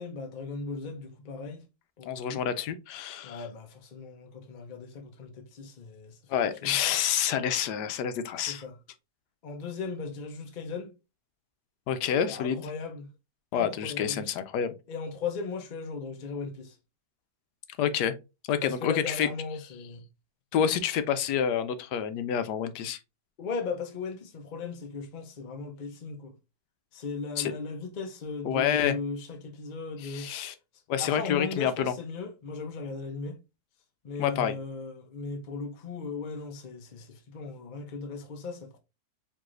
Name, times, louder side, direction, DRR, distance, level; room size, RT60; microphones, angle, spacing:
voice 1, 0.0-1.6 2.0-2.4 3.2-6.2 6.6-6.8 8.5-8.7 9.4-10.9 12.2-13.1 13.5-14.3 14.9-16.8 18.6-20.1 23.4-26.3 26.9-30.3 31.0-33.4 34.0-38.8, left 4 dB, 40° left, 0.7 m, -37 dB
voice 2, 2.1-3.4 6.3-8.6 11.9-12.7 13.5-14.7 17.8-18.1 18.5-19.3 20.5-23.0 27.4-27.5 28.4-29.0 30.0-30.5 30.9-31.9 34.2-34.5, left 8 dB, 85° left, 1.2 m, -28 dB
4.6 x 3.2 x 2.5 m
omnidirectional pair, 1.8 m